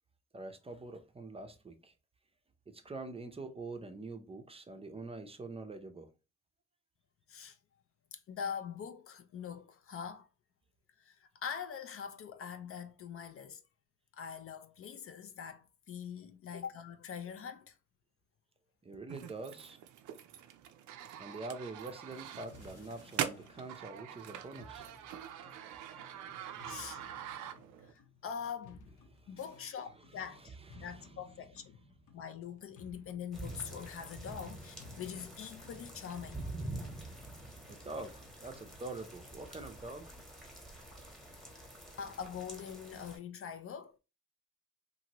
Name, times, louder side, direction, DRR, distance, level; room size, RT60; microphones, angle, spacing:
voice 1, 0.3-1.9 2.7-6.1 18.8-19.8 21.2-24.9 25.3-27.1 29.1-29.4 30.1-31.3 37.7-40.1, right 3 dB, 20° right, 0.5 m, -46 dB
voice 2, 8.1-10.3 11.0-13.6 14.1-17.7 26.6-27.0 27.9-28.9 29.3-31.8 32.1-36.5 42.0-44.0, left 7 dB, 50° left, 0.4 m, -43 dB
FX - walkie talkie ininteligible, 19.1-27.9, right 10 dB, 80° right, 0.5 m, -43 dB
sound 1, 22.5-38.9, left 4 dB, 80° left, 0.8 m, -59 dB
sound 2, 33.3-43.2, right 2 dB, ahead, 1.0 m, -47 dB
2.9 x 2.6 x 2.9 m
cardioid pair, 90°, 30 cm